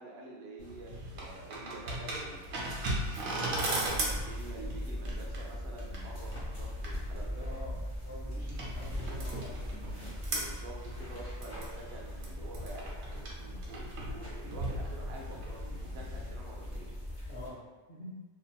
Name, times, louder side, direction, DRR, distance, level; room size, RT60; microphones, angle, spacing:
voice 1, 0.0-2.5 3.1-7.5 10.3-17.0, right 2 dB, 65° right, -1 dB, 0.7 m, -48 dB
sound 1, 0.6-16.3, right 1 dB, 80° right, 1.1 m, -39 dB
sound 2, 3.8-17.5, left 1 dB, 15° left, 0.8 m, -40 dB
voice 2, 7.4-9.6 17.3-18.2, left 1 dB, 60° left, -9 dB, 0.3 m, -47 dB
2.8 x 2.7 x 2.2 m, 1.3 s
omnidirectional pair, 1.4 m